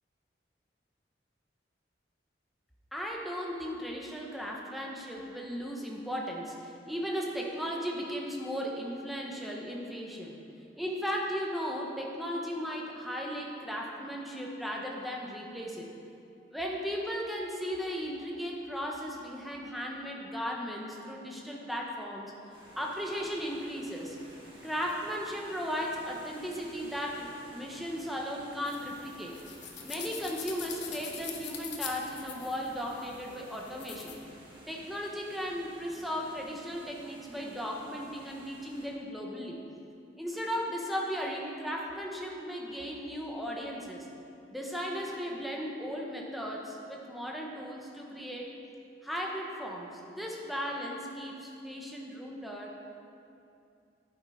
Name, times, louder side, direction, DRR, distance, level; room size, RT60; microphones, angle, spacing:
voice 1, 2.9-10.4 10.8-15.9 16.5-22.3 22.8-24.2 24.6-29.3 29.8-34.2 34.7-39.6 40.2-44.1 44.5-48.5 49.0-52.7, equal, ahead, -2 dB, 1.1 m, -36 dB
sound 1, 22.5-38.9, right 1 dB, 25° right, 2.1 m, -53 dB
sound 2, 28.7-34.1, left 7 dB, 70° left, 1.2 m, -43 dB
11.0 x 8.7 x 5.0 m, 2.6 s
head